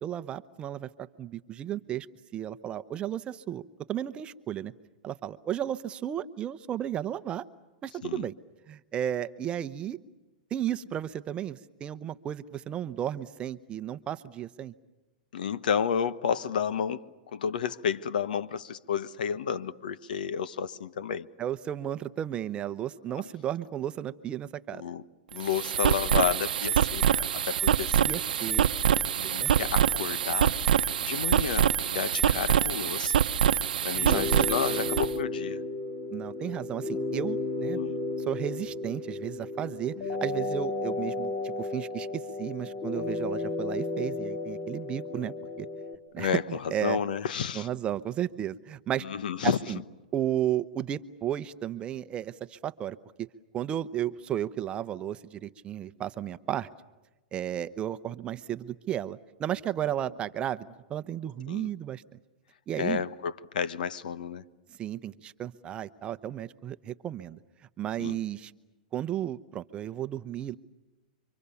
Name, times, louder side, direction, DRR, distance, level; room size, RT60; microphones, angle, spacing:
voice 1, 0.0-2.1 2.3-3.6 3.9-4.7 5.0-7.4 7.8-8.3 8.7-10.0 10.5-14.7 21.4-24.8 28.0-29.7 34.1-34.2 36.1-37.8 38.3-45.7 46.1-46.3 46.7-47.0 47.5-49.1 49.4-49.8 50.1-53.3 53.5-56.7 57.3-62.0 62.7-63.0 64.8-67.4 67.8-68.5 68.9-70.6, right 11 dB, 20° right, 0.8 m, -34 dB
voice 2, 15.3-17.0 17.3-21.3 23.1-23.2 24.7-25.0 25.3-27.0 27.3-28.1 29.2-33.2 33.8-35.6 37.7-38.0 46.2-47.7 49.0-49.6 61.5-61.7 62.8-64.4 68.0-68.2, left 7 dB, 75° left, 1.2 m, -31 dB
sound 1, 25.3-35.1, right 9 dB, 80° right, 0.8 m, -25 dB
sound 2, 34.0-46.0, left 2 dB, 25° left, 2.2 m, -33 dB
29.5 x 25.0 x 7.1 m
hypercardioid pair, 140°, 5 cm